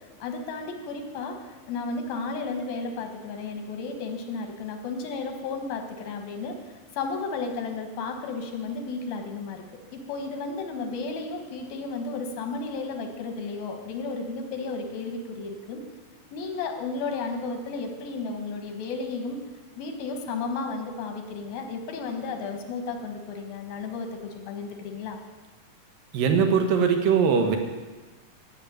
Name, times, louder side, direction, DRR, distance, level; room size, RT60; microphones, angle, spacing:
voice 1, 0.2-1.4 1.7-6.6 7.0-9.6 9.9-15.8 16.3-19.4 19.8-25.2, left 4 dB, 90° left, 4 dB, 3.3 m, -33 dB
voice 2, 26.1-27.6, right 6 dB, 75° right, 5 dB, 2.9 m, -21 dB
13.5 x 6.7 x 9.1 m, 1.3 s
omnidirectional pair, 4.0 m